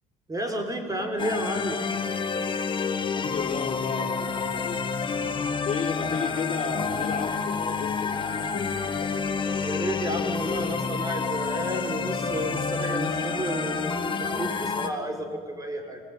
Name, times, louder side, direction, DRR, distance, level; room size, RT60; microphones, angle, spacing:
voice 1, 0.3-1.9 9.6-16.0, right 1 dB, 20° right, 5 dB, 3.9 m, -31 dB
sound 1, 1.2-14.9, left 5 dB, 30° left, 1.6 m, -29 dB
voice 2, 3.1-5.0 5.6-8.7, left 5 dB, 45° left, 3 dB, 3.2 m, -33 dB
27.0 x 19.0 x 9.5 m, 2.2 s
cardioid pair, 110°, 17 cm